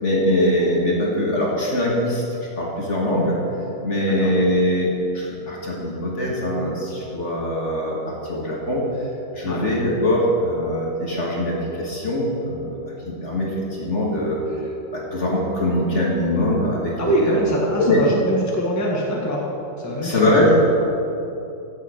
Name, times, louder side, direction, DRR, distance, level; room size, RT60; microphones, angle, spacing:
voice 1, 0.0-2.2 2.6-3.4 3.8-8.8 9.3-12.8 13.1-14.4 14.9-17.4 17.8-18.0 20.0-20.6, left 1 dB, 40° left, -3 dB, 1.9 m, -22 dB
voice 2, 4.0-4.3 9.4-9.6 17.0-19.4 19.8-20.5, equal, 10° left, -3 dB, 1.4 m, -23 dB
15.0 x 7.6 x 5.1 m, 2.9 s
omnidirectional pair, 2.1 m